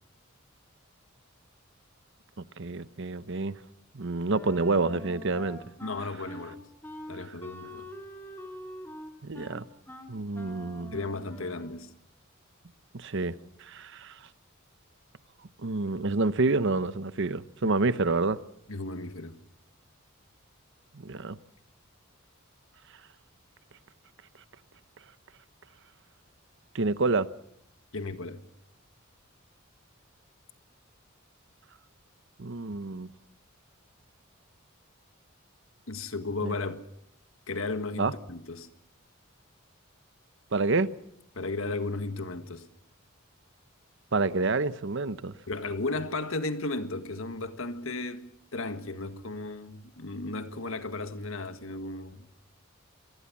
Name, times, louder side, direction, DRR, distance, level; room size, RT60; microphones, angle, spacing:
voice 1, 2.6-3.5 3.9-5.6 9.2-9.6 10.1-11.0 12.9-13.3 13.6-14.1 15.6-18.4 21.0-21.4 26.7-27.3 32.4-33.1 36.4-36.5 38.0-38.1 40.5-40.9 44.1-45.3, right 3 dB, 60° right, 0.9 m, -28 dB
Wind instrument woodwind instrument, 4.3-11.8, left 1 dB, 10° left, 2.8 m, -45 dB
voice 2, 5.8-6.6 7.1-7.9 10.9-11.9 17.6-17.7 18.7-19.4 27.9-28.4 35.9-36.8 37.5-38.7 41.3-42.7 45.5-52.3, left 3 dB, 70° left, 1.7 m, -35 dB
25.5 x 19.0 x 7.3 m
head